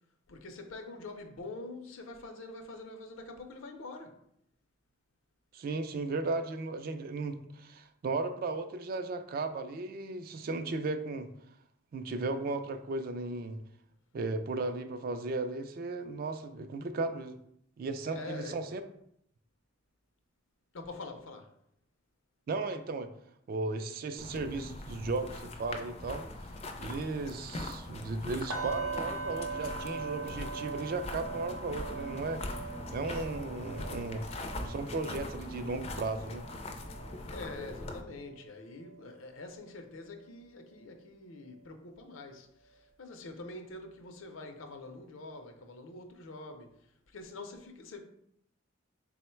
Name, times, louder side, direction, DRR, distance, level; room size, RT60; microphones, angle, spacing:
voice 1, 0.3-4.2 18.0-18.6 20.7-21.5 37.3-48.0, left 2 dB, 80° left, 0.5 m, -45 dB
voice 2, 5.5-11.3 11.9-13.6 14.1-17.4 17.8-18.8 22.5-23.1 23.5-26.2 26.8-32.4 32.9-36.4, right 3 dB, 45° right, 0.3 m, -35 dB
sound 1, 24.2-38.0, left 1 dB, 30° left, 0.4 m, -41 dB
sound 2, 28.5-38.4 38.8-39.0 39.5-39.6, right 4 dB, 90° right, 0.8 m, -42 dB
3.7 x 2.1 x 4.3 m
head